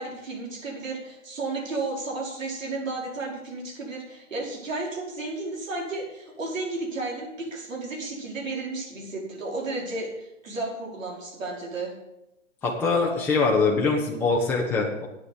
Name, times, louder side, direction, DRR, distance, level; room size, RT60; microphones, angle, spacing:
voice 1, 0.0-11.9, right 3 dB, 70° right, -2 dB, 5.2 m, -33 dB
voice 2, 12.6-15.1, left 4 dB, 5° left, -3 dB, 0.9 m, -23 dB
9.1 x 7.4 x 8.2 m, 0.91 s
hypercardioid pair, 150°, 40 cm